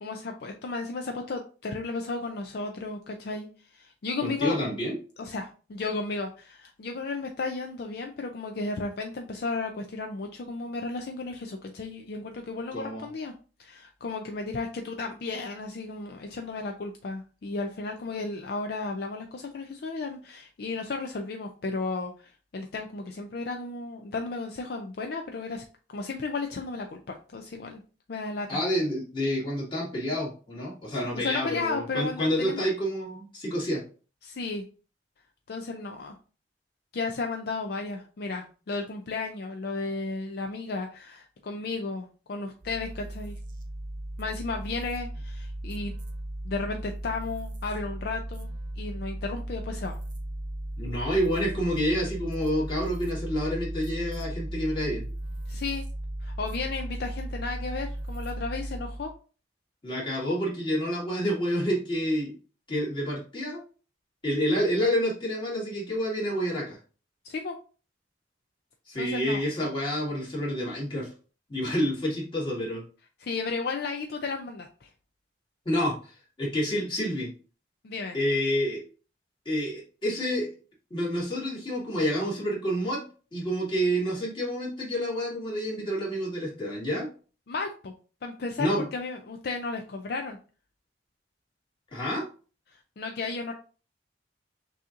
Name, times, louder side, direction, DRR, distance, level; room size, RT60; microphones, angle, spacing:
voice 1, 0.0-3.5 3.7-4.6 5.2-13.3 13.6-25.6 25.9-27.8 28.1-28.6 31.1-32.6 34.2-34.6 35.5-36.1 36.9-43.4 44.2-45.9 46.4-48.5 48.8-50.0 55.5-55.8 56.2-59.1 67.2-67.6 69.0-69.7 73.2-74.9 77.8-78.2 87.5-87.9 88.2-90.4 92.7-93.5, left 3 dB, 60° left, 4 dB, 0.4 m, -34 dB
voice 2, 4.2-5.0 12.7-13.1 28.5-33.8 50.8-55.1 59.8-62.3 62.7-63.6 64.2-66.8 68.9-71.1 71.5-72.8 75.7-76.1 76.4-77.3 78.1-78.8 79.5-80.5 80.9-83.0 83.3-87.1 88.6-88.9 91.9-92.2, equal, 30° left, -5 dB, 2.0 m, -28 dB
sound 1, 42.6-59.2, right 1 dB, 45° right, 0.8 m, -36 dB
6.1 x 2.8 x 2.5 m, 0.37 s
head